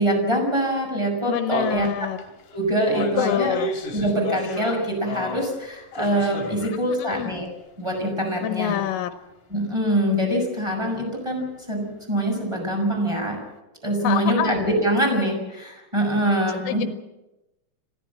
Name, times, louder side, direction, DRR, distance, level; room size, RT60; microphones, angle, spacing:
voice 1, 0.0-1.9 2.5-3.5 3.9-7.5 7.8-8.8 9.5-13.4 13.8-16.9, right 1 dB, 5° right, 2 dB, 6.1 m, -24 dB
voice 2, 1.3-2.2 3.2-3.7 6.8-7.3 8.4-9.1 14.0-14.5 16.7-16.9, left 12 dB, 85° left, 8 dB, 3.6 m, -26 dB
sound 1, 1.8-1.9 2.2-5.6 5.9-6.9 7.1-7.2 8.0-8.1, left 2 dB, 50° left, 3.7 m, -33 dB
26.0 x 16.0 x 7.7 m, 1.0 s
omnidirectional pair, 5.6 m